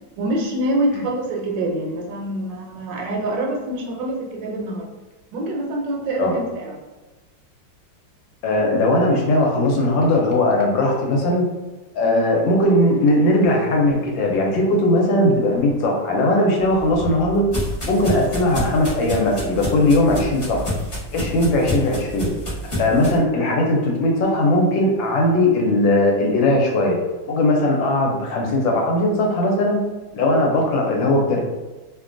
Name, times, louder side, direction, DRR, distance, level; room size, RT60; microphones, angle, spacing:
voice 1, 0.2-4.9 5.3-6.8 12.0-12.2, right 1 dB, 75° right, -1 dB, 1.2 m, -25 dB
voice 2, 8.4-11.5 11.9-17.5 17.9-20.6 21.1-22.3 22.8-27.0 27.3-29.8 30.1-31.4, left 1 dB, 85° left, 0 dB, 1.3 m, -19 dB
sound 1, 16.6-23.2, left 1 dB, 40° left, 0.4 m, -29 dB
3.0 x 2.2 x 2.5 m, 1.2 s
omnidirectional pair, 2.1 m